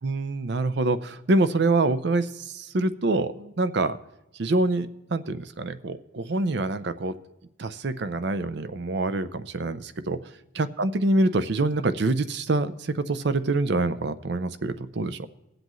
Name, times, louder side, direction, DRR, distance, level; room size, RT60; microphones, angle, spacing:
voice 1, 0.0-4.0 4.4-7.1 7.6-10.2 10.6-15.2, right 2 dB, 55° right, 12 dB, 0.5 m, -25 dB
22.0 x 7.8 x 3.1 m, 0.95 s
head